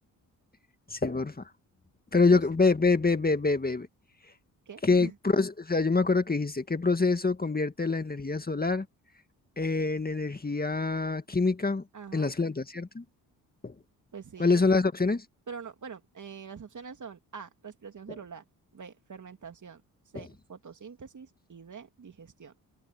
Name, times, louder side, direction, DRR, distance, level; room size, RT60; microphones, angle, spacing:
voice 1, 0.9-1.4 2.1-3.9 4.8-8.9 9.6-11.8 12.1-13.0 13.6-13.8 14.4-15.3 20.1-20.2, left 3 dB, 25° left, 2.0 m, -26 dB
voice 2, 4.7-5.1 11.9-12.3 14.1-14.8 15.5-18.4 18.7-19.8 20.1-22.5, right 6 dB, 50° right, 3.0 m, -44 dB
supercardioid pair, 55°, 40 cm